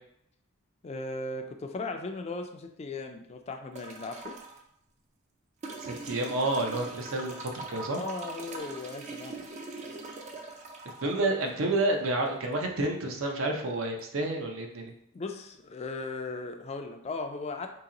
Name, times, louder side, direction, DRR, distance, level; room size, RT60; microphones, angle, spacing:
voice 1, 0.8-4.3 7.9-9.4 15.1-17.7, left 3 dB, 30° left, 5 dB, 0.3 m, -37 dB
sound 1, 3.8-4.6 5.6-12.6 14.0-14.1, right 3 dB, 35° right, 0.4 m, -42 dB
voice 2, 5.8-8.0 10.8-14.9, right 2 dB, 70° right, 2 dB, 0.6 m, -30 dB
2.9 x 2.8 x 3.8 m, 0.75 s
head